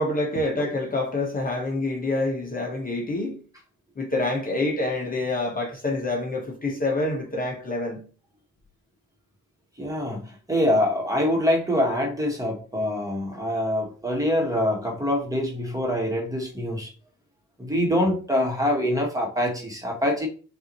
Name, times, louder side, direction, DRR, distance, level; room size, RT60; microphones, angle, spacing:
voice 1, 0.0-3.4 4.0-8.0, left 2 dB, 30° left, 1.1 m, -27 dB
voice 2, 9.8-16.9 17.6-20.3, left 1 dB, 10° right, 1.5 m, -25 dB
5.6 x 2.7 x 3.0 m
cardioid pair, 90°, 30 cm